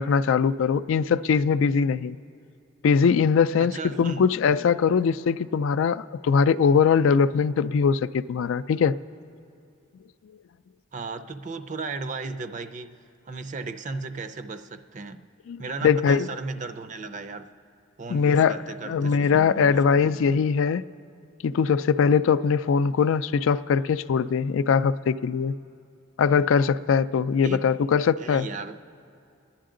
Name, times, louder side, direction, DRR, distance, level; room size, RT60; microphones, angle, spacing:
voice 1, 0.0-2.2 2.8-8.9 15.5-16.3 18.1-20.8 21.4-25.6 26.2-28.5, left 6 dB, 75° left, 14 dB, 0.3 m, -21 dB
voice 2, 3.6-4.3 10.9-12.9 13.3-15.2 15.6-17.5 18.0-20.1 27.4-27.7 28.2-28.8, right 3 dB, 35° right, 9 dB, 0.5 m, -35 dB
29.0 x 10.0 x 3.8 m, 2.5 s
head